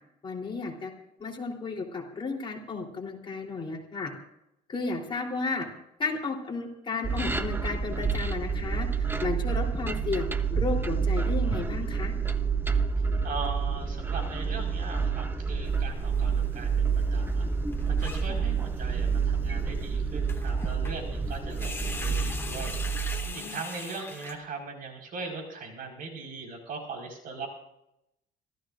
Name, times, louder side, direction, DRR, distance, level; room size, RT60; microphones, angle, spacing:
voice 1, 0.2-0.9 1.2-4.1 4.7-5.7 6.0-12.1 23.2-23.6, left 4 dB, 30° left, 0 dB, 3.5 m, -33 dB
sound 1, 7.0-23.3, right 5 dB, 10° right, 0.9 m, -28 dB
voice 2, 13.2-17.5 17.9-22.8 23.3-27.5, right 4 dB, 55° right, 1 dB, 4.8 m, -39 dB
sound 2, 15.6-16.4 16.7-16.8 17.0-17.1 17.3-17.4 17.7-18.4 19.0-19.2 19.8-19.9 20.3-20.9 21.2-24.3, left 3 dB, 15° left, 2.0 m, -40 dB
26.0 x 14.5 x 2.6 m, 0.81 s
cardioid pair, 110°, 17 cm